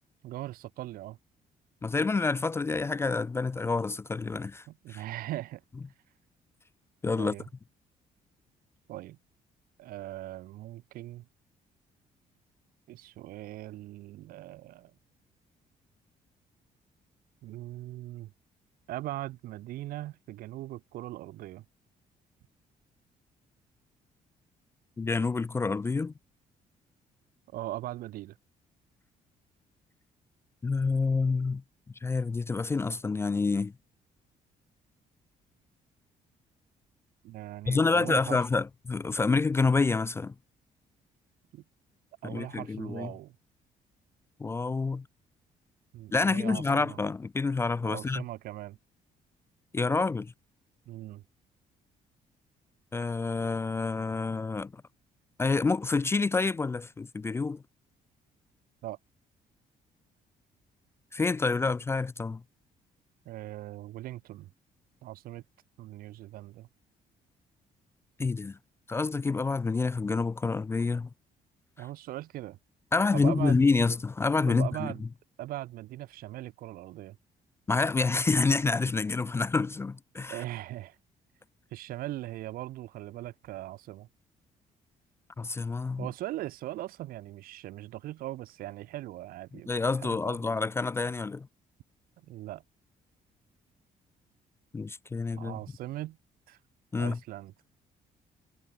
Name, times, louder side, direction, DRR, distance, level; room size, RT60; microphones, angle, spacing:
voice 1, 0.2-1.2 4.7-5.6 7.2-7.5 8.9-9.2 9.8-11.3 12.9-14.9 17.4-18.3 18.9-21.6 27.5-28.4 37.2-38.4 41.5-41.6 42.2-43.4 45.9-47.0 47.8-48.8 50.9-51.2 58.8-59.0 63.2-64.5 65.0-65.4 65.8-66.7 71.8-72.6 73.1-73.6 74.5-75.0 75.4-77.2 80.3-81.0 81.7-84.1 86.0-89.7 90.0-90.4 92.2-92.6 95.4-96.2 96.5-96.6 97.0-97.5, right 15 dB, 90° right, 3.1 m, -40 dB
voice 2, 1.8-4.6 4.9-5.0 7.0-7.3 25.0-26.1 30.6-31.6 32.0-33.7 37.7-40.3 42.2-43.1 44.4-45.1 46.1-48.2 49.7-50.3 52.9-54.8 55.4-57.6 61.1-62.4 68.2-68.6 68.9-71.1 72.9-74.9 77.7-80.4 85.4-86.1 89.7-91.5 94.7-95.5 96.9-97.2, left 4 dB, 15° left, 0.3 m, -28 dB
cardioid pair, 130°, 15 cm